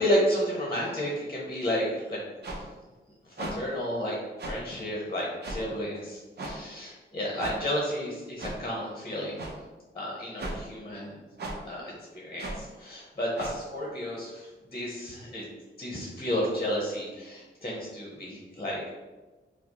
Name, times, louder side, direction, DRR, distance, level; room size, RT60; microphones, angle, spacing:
voice 1, 0.0-2.2 3.4-4.2 4.5-9.4 9.9-11.2 11.6-15.4 15.8-18.9, equal, 25° left, -4 dB, 0.8 m, -31 dB
sound 1, 2.4-2.6 3.4-3.5 4.4-4.6 5.4-5.6 6.4-6.5 7.4-7.5 8.4-8.6 9.4-9.5 10.4-10.6 11.4-11.6 12.4-12.6 13.3-13.5, right 2 dB, 60° right, 0.7 m, -35 dB
4.9 x 2.1 x 2.9 m, 1.2 s
wide cardioid pair, 95°, 19 cm